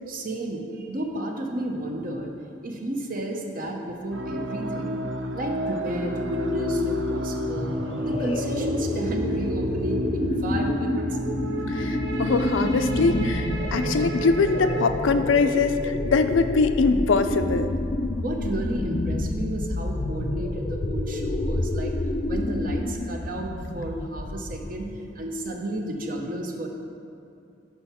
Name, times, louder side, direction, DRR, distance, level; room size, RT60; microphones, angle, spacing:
voice 1, 0.1-2.3 2.6-5.0 5.3-11.2 18.2-21.9 22.2-24.9 25.1-26.7, right 1 dB, 45° right, 2 dB, 0.8 m, -32 dB
sound 1, 4.1-14.9, equal, 80° right, 0.6 m, -30 dB
sound 2, 7.4-25.0, left 2 dB, 30° left, 0.4 m, -29 dB
voice 2, 11.7-17.7, left 4 dB, 90° left, 9 dB, 0.4 m, -22 dB
6.3 x 5.5 x 5.8 m, 2.6 s
head